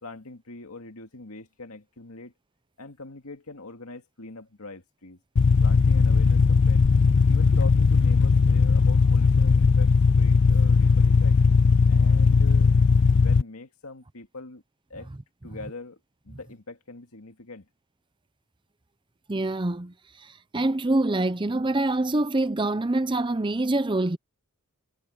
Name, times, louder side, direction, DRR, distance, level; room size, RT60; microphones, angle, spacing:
voice 1, 0.0-2.3 2.8-5.2 5.6-6.9 7.3-11.4 11.9-12.7 13.2-14.6 14.9-15.1 15.4-17.7, left 3 dB, 80° left, 2.2 m, -42 dB
sound 1, 5.4-13.4, left 4 dB, 55° left, 0.4 m, -18 dB
voice 2, 19.3-24.2, right 2 dB, 20° right, 0.6 m, -25 dB
head